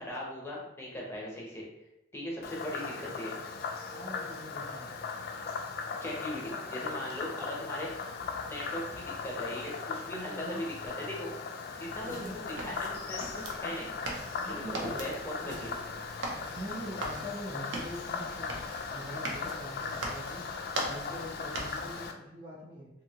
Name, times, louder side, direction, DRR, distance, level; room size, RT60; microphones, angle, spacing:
voice 1, 0.0-1.6 2.1-3.4 6.0-7.9 8.5-11.3 11.8-13.9 14.4-16.0, left 1 dB, 15° left, -4 dB, 0.7 m, -39 dB
Frog, 2.4-22.1, left 5 dB, 50° left, 0.3 m, -38 dB
voice 2, 3.9-5.0 10.2-10.7 12.0-12.4 14.4-15.0 15.4-15.6 16.5-20.5 20.8-22.9, equal, 25° right, -4 dB, 0.4 m, -44 dB
sound 1, 11.9-22.1, right 2 dB, 70° right, 0.6 m, -41 dB
2.7 x 2.7 x 2.8 m, 0.85 s
head